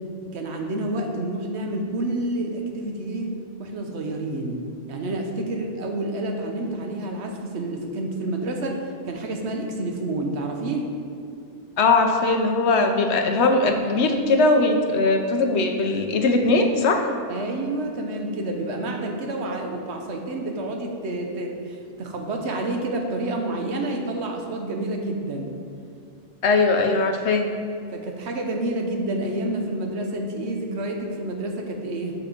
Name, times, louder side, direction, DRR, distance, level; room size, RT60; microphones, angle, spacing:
voice 1, 0.3-3.3 3.6-4.6 4.9-10.9 17.3-25.5 27.9-32.1, right 2 dB, 70° right, 2 dB, 1.2 m, -29 dB
voice 2, 11.8-17.1 26.4-27.5, left 3 dB, 70° left, 4 dB, 1.0 m, -20 dB
6.6 x 6.0 x 5.0 m, 2.4 s
omnidirectional pair, 1.2 m